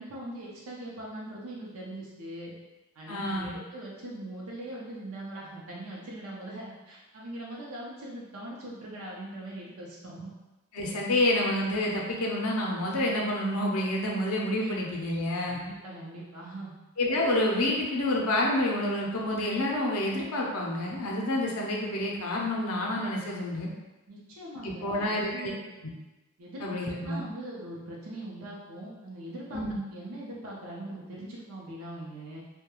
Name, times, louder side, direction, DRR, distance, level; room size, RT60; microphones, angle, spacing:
voice 1, 0.0-2.5 3.0-10.3 14.6-14.7 15.5-16.8 24.1-25.5 26.4-26.7 27.0-29.6 29.9-32.4, right 1 dB, 75° right, -4 dB, 0.5 m, -41 dB
voice 2, 3.1-3.6 10.7-15.6 17.0-23.7 24.6-25.5 26.6-27.2 29.5-29.8, left 1 dB, 80° left, -2 dB, 0.5 m, -28 dB
2.3 x 2.1 x 2.9 m, 1.1 s
head